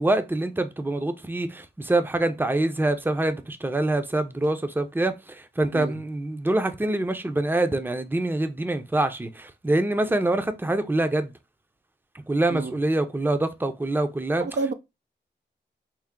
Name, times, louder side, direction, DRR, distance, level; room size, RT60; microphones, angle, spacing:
voice 1, 0.0-11.3 12.3-14.4, right 2 dB, 10° right, 0.6 m, -25 dB
voice 2, 14.4-14.7, right 3 dB, 65° right, 0.6 m, -28 dB
4.5 x 2.0 x 3.6 m
cardioid pair, 55°, 19 cm